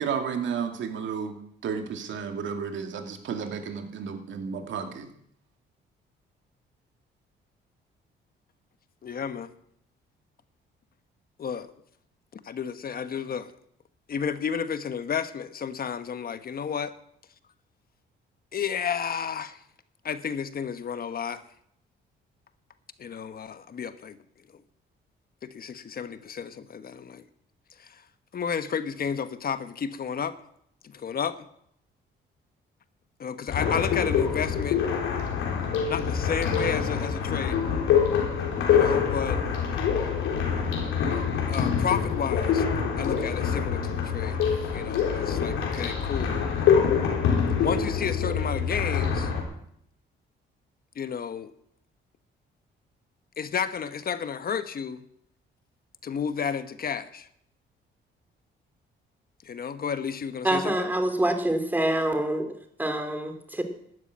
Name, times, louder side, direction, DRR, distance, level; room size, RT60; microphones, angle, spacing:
voice 1, 0.0-5.1, right 6 dB, 70° right, 5 dB, 2.2 m, -32 dB
voice 2, 9.0-9.5 11.4-11.7 12.4-13.5 14.1-16.9 18.5-19.6 20.0-21.4 23.0-24.2 25.4-27.2 27.8-28.0 28.3-30.4 30.8-31.5 33.2-34.8 35.9-37.6 38.7-39.4 41.1-41.2 41.5-42.6 43.0-46.4 47.6-49.3 50.9-51.5 53.4-55.0 56.0-57.3 59.4-60.9, left 7 dB, 50° left, 11 dB, 1.2 m, -32 dB
sound 1, 33.5-49.4, left 7 dB, 90° left, 3.9 m, -25 dB
voice 3, 60.4-63.6, right 1 dB, 10° right, 6 dB, 2.7 m, -26 dB
12.5 x 9.7 x 8.8 m, 0.70 s
cardioid pair, 90°, 20 cm